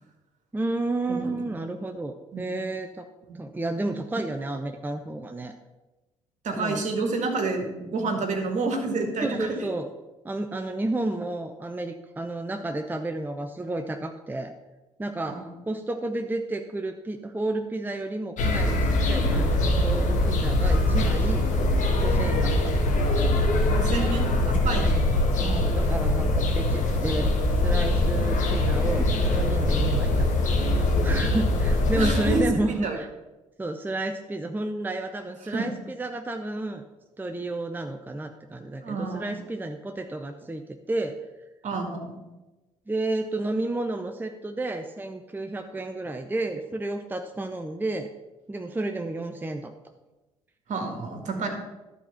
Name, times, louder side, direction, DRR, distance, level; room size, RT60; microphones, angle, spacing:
voice 1, 0.5-3.1 3.3-5.5 6.6-6.8 9.2-9.9 10.2-14.5 15.0-21.5 22.0-22.7 24.6-24.9 25.4-30.3 30.7-33.1 33.6-36.8 37.2-41.2 42.9-48.1 48.5-49.7, right 2 dB, 10° right, 5 dB, 0.7 m, -31 dB
voice 2, 6.4-9.5 15.3-15.5 23.6-25.0 25.4-25.7 32.0-33.0 35.5-35.7 38.8-39.4 41.6-42.2 50.7-51.5, right 3 dB, 50° right, 3 dB, 1.9 m, -29 dB
sound 1, 18.4-32.4, left 1 dB, 55° left, 1.5 m, -23 dB
11.5 x 4.2 x 5.7 m, 1.1 s
hypercardioid pair, 55°, 15 cm